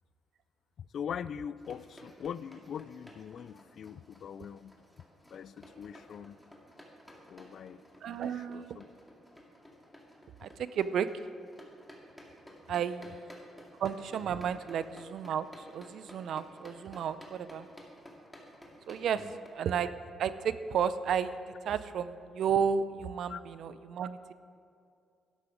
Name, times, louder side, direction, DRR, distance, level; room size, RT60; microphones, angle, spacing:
voice 1, 0.9-4.8 5.3-6.4 7.3-8.8 19.2-19.3 23.3-23.4, left 8 dB, 60° left, 17 dB, 0.3 m, -42 dB
sound 1, 1.6-19.5, equal, 5° left, 2.2 m, -54 dB
voice 2, 8.0-8.8 10.4-11.1 12.7-13.3 13.8-17.7 18.9-19.2 19.5-19.9 20.2-24.3, right 7 dB, 70° right, 13 dB, 0.4 m, -32 dB
12.5 x 10.5 x 5.0 m, 2.4 s
cardioid pair, 90°, 0 cm